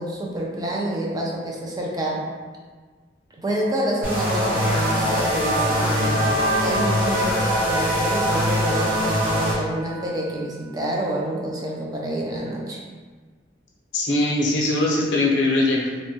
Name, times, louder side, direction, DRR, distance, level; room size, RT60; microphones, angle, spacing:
voice 1, 0.0-2.2 3.4-6.3 6.6-12.8, right 1 dB, 20° right, -2 dB, 0.4 m, -28 dB
sound 1, 4.0-9.5, equal, 50° right, 1.0 m, -23 dB
sound 2, 4.0-10.4, right 2 dB, 75° right, 0.6 m, -29 dB
voice 2, 13.9-15.9, left 2 dB, 80° left, -4 dB, 0.6 m, -21 dB
3.0 x 2.2 x 2.8 m, 1.5 s
head